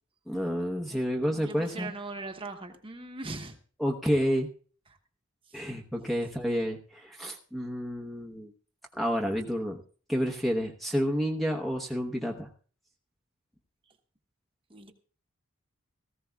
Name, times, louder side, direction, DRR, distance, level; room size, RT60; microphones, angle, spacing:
voice 1, 0.3-1.9 3.8-4.5 5.5-8.5 8.9-9.8 10.1-12.5, equal, ahead, 1 dB, 0.9 m, -30 dB
voice 2, 1.3-3.6 5.5-5.6 14.7-14.9, right 3 dB, 25° right, 5 dB, 1.1 m, -40 dB
18.0 x 15.0 x 2.3 m, 0.42 s
head